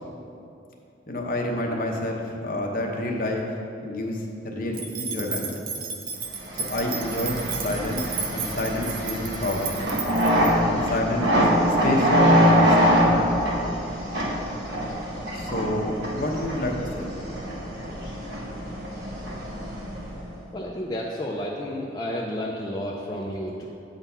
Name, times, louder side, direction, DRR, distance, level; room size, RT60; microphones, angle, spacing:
voice 1, 1.1-3.5 3.8-5.5 6.5-9.7 10.4-13.0 15.3-17.1, left 1 dB, 45° left, 0 dB, 0.8 m, -29 dB
sound 1, 4.7-10.5, right 5 dB, 50° right, 0.6 m, -33 dB
sound 2, 6.4-20.3, equal, 65° right, 1.2 m, -24 dB
voice 2, 20.5-23.7, left 1 dB, 20° left, -3 dB, 0.4 m, -31 dB
8.1 x 4.0 x 5.5 m, 2.7 s
head